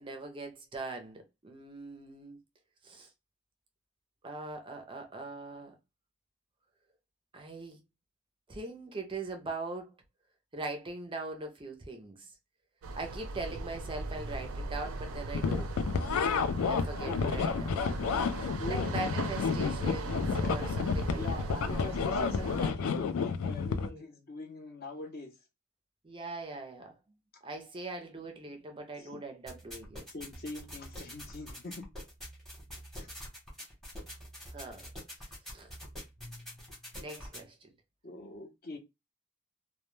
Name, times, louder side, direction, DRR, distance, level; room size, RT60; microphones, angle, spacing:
voice 1, 0.0-2.4 2.8-3.1 4.2-5.7 7.3-7.8 8.5-9.9 10.5-12.3 13.0-15.8 16.7-17.8 18.4-21.5 23.7-24.0 26.0-26.9 27.4-30.0 34.5-34.9 35.5-35.7 37.0-37.7, right 3 dB, 25° right, 0.4 m, -41 dB
sound 1, 12.8-22.7, right 3 dB, 85° right, 0.4 m, -39 dB
sound 2, 15.3-23.9, left 5 dB, 85° left, 0.3 m, -31 dB
voice 2, 21.2-25.3 29.0-29.2 30.1-31.9 32.9-33.1 38.0-38.8, left 2 dB, 45° left, 0.7 m, -43 dB
sound 3, 29.5-37.4, equal, ahead, 0.8 m, -46 dB
2.1 x 2.1 x 3.0 m
head